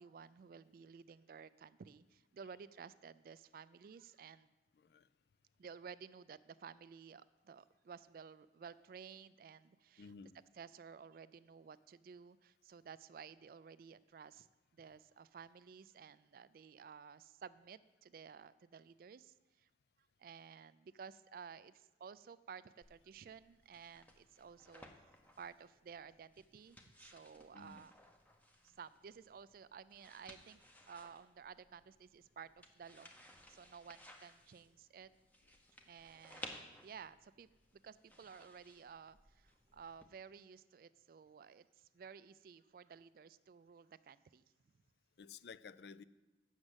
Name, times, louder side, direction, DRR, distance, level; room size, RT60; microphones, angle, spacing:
voice 1, 0.0-4.5 5.6-10.1 10.6-14.5 14.7-19.7 20.2-24.9 25.4-27.9 28.6-30.6 30.9-35.1 35.9-37.5 37.8-44.4, right 6 dB, 50° right, 16 dB, 0.3 m, -54 dB
voice 2, 4.7-5.1 10.0-10.4 27.5-27.9 45.2-46.0, left 5 dB, 60° left, 15 dB, 0.4 m, -54 dB
sound 1, 22.8-40.1, left 1 dB, 10° left, 0.7 m, -59 dB
7.2 x 6.4 x 7.9 m, 1.1 s
head